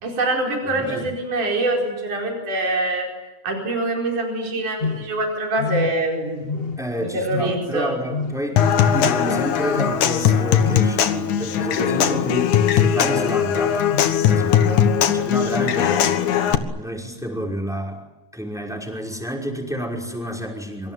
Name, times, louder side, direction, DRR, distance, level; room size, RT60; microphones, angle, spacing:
voice 1, 0.0-3.1 3.4-6.6 7.0-7.9, right 2 dB, 85° right, 0 dB, 6.2 m, -24 dB
voice 2, 0.7-1.1 6.8-8.6 8.9-13.8 14.2-16.2 16.4-18.0 18.3-20.9, equal, ahead, 1 dB, 5.2 m, -29 dB
sound 1, 4.8-5.3 5.6-6.2 6.4-7.0 7.3-7.8 8.1-8.6 8.9-9.4 9.7-10.1 10.6-11.0 11.9-12.5 13.0-13.4 13.9-14.2 14.8-15.1, left 4 dB, 50° left, 0.7 m, -29 dB
Human voice / Acoustic guitar / Percussion, 8.6-16.6, left 9 dB, 75° left, 2.9 m, -19 dB
26.0 x 24.5 x 9.2 m, 1.0 s
omnidirectional pair, 3.5 m